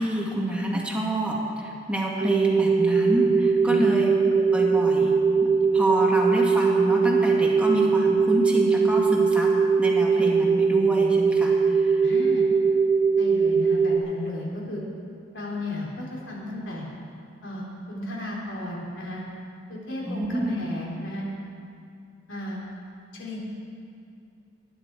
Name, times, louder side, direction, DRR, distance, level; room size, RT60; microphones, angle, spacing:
voice 1, 0.0-5.1 5.4-9.5 9.8-12.0 20.0-20.5, equal, 5° right, -3 dB, 2.0 m, -27 dB
sound 1, 2.2-14.0, right 5 dB, 30° right, 1.4 m, -21 dB
voice 2, 12.0-12.5 13.2-14.8 15.3-16.9 17.4-19.2 19.7-21.2 22.3-22.6 23.1-23.4, left 1 dB, 70° left, -3 dB, 3.6 m, -34 dB
20.5 x 10.0 x 4.8 m, 2.4 s
head